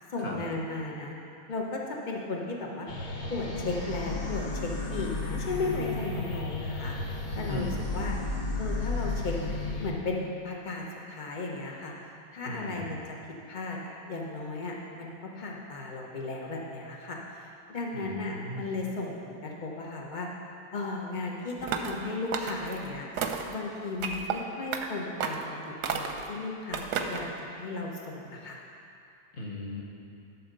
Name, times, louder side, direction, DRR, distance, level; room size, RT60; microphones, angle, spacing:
voice 1, 0.1-1.1 1.5-2.9 3.3-7.0 7.3-8.2 8.6-9.4 9.8-11.9 12.3-13.2 13.5-20.3 20.7-23.1 23.5-28.6, left 3 dB, 85° left, -1 dB, 0.4 m, -35 dB
sound 1, 2.9-9.9, left 3 dB, 60° left, 1.5 m, -33 dB
voice 2, 12.4-12.8 17.9-18.6 29.3-29.8, left 1 dB, 35° left, -2 dB, 1.0 m, -37 dB
sound 2, 21.6-22.0 22.3-22.8 23.2-23.5 24.0-24.4 24.7-24.9 25.2-25.5 25.8-26.3 26.7-27.3, right 6 dB, 70° right, 1.0 m, -31 dB
12.5 x 4.2 x 6.6 m, 2.6 s
omnidirectional pair, 2.2 m